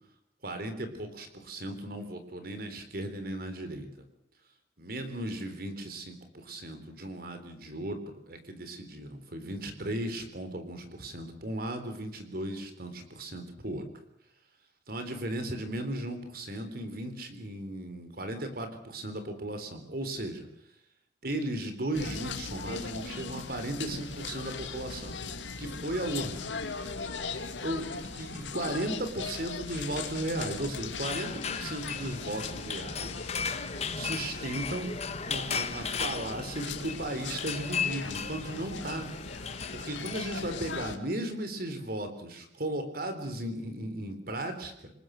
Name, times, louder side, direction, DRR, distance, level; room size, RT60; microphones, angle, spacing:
voice 1, 0.4-4.1 4.8-8.0 8.3-13.8 14.9-20.5 21.2-25.2 25.6-26.4 27.6-33.2 33.9-34.9 35.3-39.1 39.7-44.9, right 1 dB, 55° right, 8 dB, 3.7 m, -36 dB
sound 1, 21.9-41.0, left 4 dB, 85° left, 2.3 m, -39 dB
sound 2, 31.0-40.8, left 6 dB, 35° left, 1.2 m, -36 dB
28.0 x 19.0 x 6.5 m, 0.80 s
head